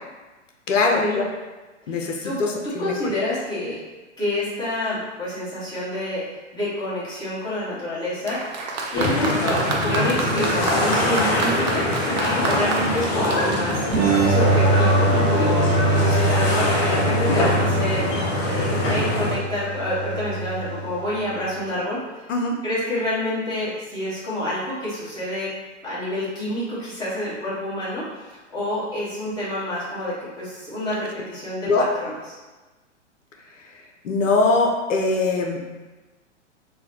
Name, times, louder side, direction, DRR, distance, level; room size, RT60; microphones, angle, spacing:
voice 1, 0.7-1.2 1.9-2.9 22.3-22.6 31.6-31.9 34.0-35.6, left 3 dB, 80° left, 1 dB, 0.6 m, -21 dB
voice 2, 1.9-3.8 4.2-8.5 8.9-9.5 9.8-18.1 18.4-22.0 22.6-25.5 25.8-32.1, left 1 dB, 10° left, -10 dB, 1.3 m, -28 dB
Applause, 8.2-14.7 15.6-15.7, right 3 dB, 40° right, 0.4 m, -29 dB
sound 1, 8.9-19.3, left 1 dB, 35° left, 0.8 m, -23 dB
sound 2, 13.9-21.4, right 2 dB, 85° right, 0.6 m, -23 dB
3.8 x 2.2 x 2.8 m, 1.2 s
hypercardioid pair, 115°, 37 cm